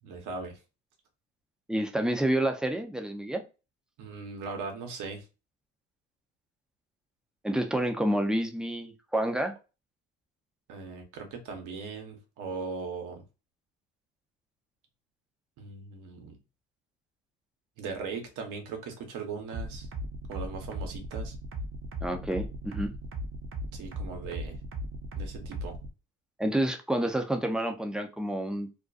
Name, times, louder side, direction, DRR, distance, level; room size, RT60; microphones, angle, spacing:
voice 1, 0.0-0.6 4.0-5.2 10.7-13.2 15.6-16.4 17.8-19.9 20.3-21.3 23.7-24.6 25.2-25.7, right 4 dB, 70° right, 0.9 m, -39 dB
voice 2, 1.7-3.4 7.4-9.5 22.0-22.9 26.4-28.7, right 1 dB, ahead, 0.5 m, -29 dB
sound 1, 19.5-25.9, right 1 dB, 40° right, 0.6 m, -37 dB
2.5 x 2.2 x 2.4 m
supercardioid pair, 80°, 31 cm